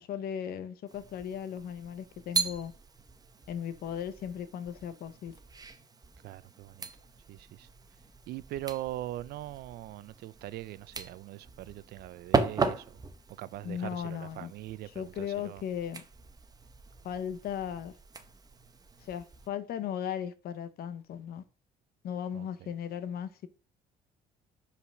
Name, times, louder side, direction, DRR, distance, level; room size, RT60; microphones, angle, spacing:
voice 1, 0.0-2.7 3.5-5.3 13.6-14.5 14.9-16.0 17.0-17.9 19.0-21.4 22.0-23.3, left 9 dB, 65° left, 1.0 m, -37 dB
sound 1, 0.9-19.5, right 4 dB, 20° right, 0.9 m, -38 dB
voice 2, 6.2-6.9 7.3-7.7 8.3-13.0 13.4-15.6 22.3-22.7, right 15 dB, 70° right, 0.5 m, -41 dB
5.5 x 4.9 x 6.3 m
cardioid pair, 110°, 17 cm